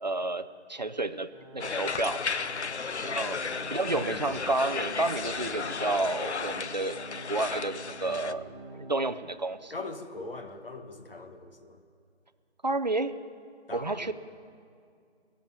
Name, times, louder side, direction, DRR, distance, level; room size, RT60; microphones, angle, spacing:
voice 1, 0.0-2.2 3.0-7.0 7.3-8.4 8.8-9.7 12.6-13.1 13.7-14.1, right 2 dB, 40° right, 12 dB, 0.5 m, -30 dB
Organ, 1.3-9.3 9.7-9.8 10.5-10.6, right 2 dB, 5° right, 1.9 m, -47 dB
sound 1, 1.6-8.3, left 5 dB, 75° left, 0.6 m, -34 dB
voice 2, 3.9-4.5 8.0-8.5 9.7-11.8 13.7-14.1, left 3 dB, 55° left, 6 dB, 1.5 m, -42 dB
20.5 x 7.1 x 9.4 m, 2.3 s
figure-of-eight pair, 160°, 34 cm